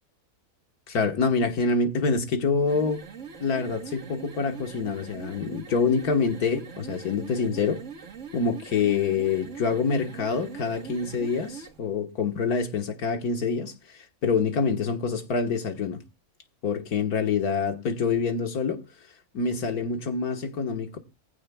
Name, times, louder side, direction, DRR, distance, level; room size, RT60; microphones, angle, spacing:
voice 1, 0.9-3.1 3.4-7.8 8.3-16.0 16.6-18.8 19.3-21.0, left 5 dB, 80° left, 1.9 m, -26 dB
sound 1, 2.6-11.8, right 6 dB, 55° right, 1.5 m, -42 dB
19.0 x 15.5 x 2.3 m
omnidirectional pair, 1.6 m